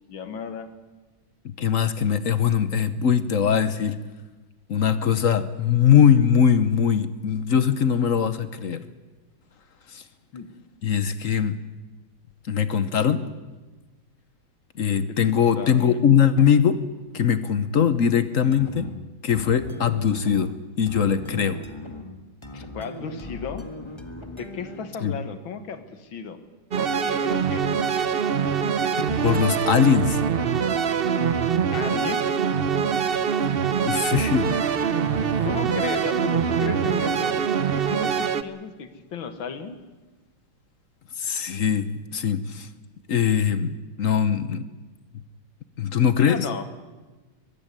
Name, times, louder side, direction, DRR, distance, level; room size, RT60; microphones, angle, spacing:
voice 1, 0.1-0.7 10.3-10.5 15.1-16.0 22.7-23.7 24.4-26.4 26.8-27.7 31.7-32.4 33.9-34.0 35.4-37.4 37.7-39.8 46.2-46.6, left 6 dB, 85° left, 10 dB, 2.3 m, -34 dB
voice 2, 1.4-4.0 4.7-8.8 9.9-10.0 10.8-11.6 12.5-13.4 14.8-16.8 17.1-18.9 19.2-21.6 22.5-22.6 25.0-25.2 29.2-30.2 33.8-34.7 35.3-35.5 41.2-42.7 43.1-43.7 44.0-44.7 45.8-46.5, left 8 dB, 50° left, 13 dB, 1.1 m, -21 dB
sound 1, 18.5-25.0, left 1 dB, 15° left, 1.7 m, -39 dB
sound 2, 26.7-38.4, right 7 dB, 55° right, 0.6 m, -24 dB
22.5 x 15.5 x 9.9 m, 1.2 s
omnidirectional pair, 2.1 m